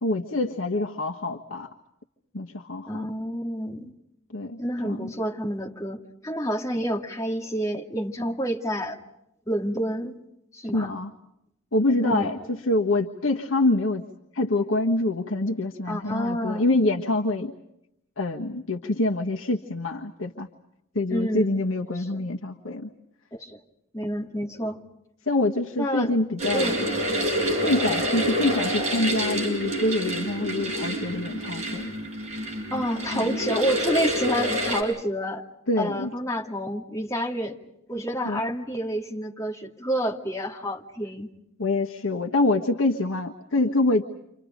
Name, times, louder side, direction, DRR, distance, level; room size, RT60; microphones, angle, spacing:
voice 1, 0.0-1.7 2.3-3.1 4.3-5.1 10.7-11.1 11.7-14.0 14.3-17.5 18.2-20.5 20.9-22.9 25.3-26.8 27.6-31.9 33.2-33.3 35.7-36.1 38.2-38.4 41.6-44.1, left 2 dB, 70° left, 1 dB, 1.4 m, -25 dB
voice 2, 2.9-3.9 4.6-9.0 9.5-10.2 10.5-10.9 12.0-12.6 15.9-16.6 21.1-21.6 21.9-22.3 23.3-23.6 23.9-24.8 25.8-26.2 26.5-26.9 32.7-35.4 35.8-37.6 37.9-41.3, equal, 15° left, 0 dB, 2.4 m, -29 dB
sound 1, 26.4-34.8, right 1 dB, 35° right, 7.1 m, -27 dB
30.0 x 26.5 x 5.2 m, 0.80 s
head